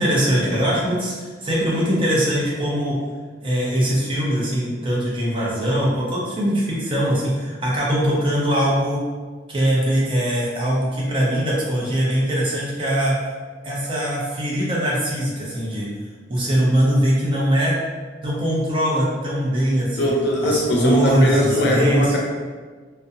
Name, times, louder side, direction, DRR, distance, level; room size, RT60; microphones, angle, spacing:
voice 1, 0.0-3.0 3.4-9.0 9.5-13.2 13.6-15.9 16.3-17.7 18.2-20.1 20.4-22.1, equal, 30° right, -6 dB, 0.5 m, -21 dB
voice 2, 20.0-22.2, equal, 65° left, -2 dB, 0.5 m, -20 dB
2.4 x 2.1 x 2.6 m, 1.5 s
head